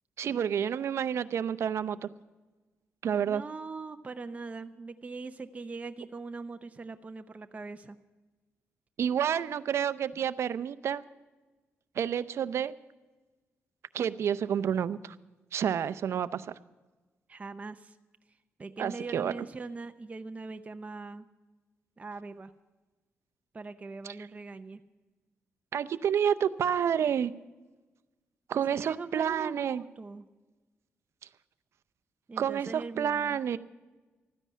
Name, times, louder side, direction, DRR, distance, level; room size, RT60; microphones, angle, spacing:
voice 1, 0.2-2.1 3.0-3.4 9.0-11.0 12.0-12.7 13.9-15.1 15.5-16.5 18.8-19.3 25.7-27.3 28.5-29.8 32.4-33.6, right 8 dB, 70° right, 15 dB, 0.6 m, -29 dB
voice 2, 3.2-8.0 17.3-18.0 18.6-21.3 22.0-22.5 23.5-24.8 28.5-30.2 32.3-33.4, right 3 dB, 30° right, 8 dB, 0.6 m, -41 dB
13.5 x 10.0 x 7.2 m, 1.2 s
cardioid pair, 80°, 5 cm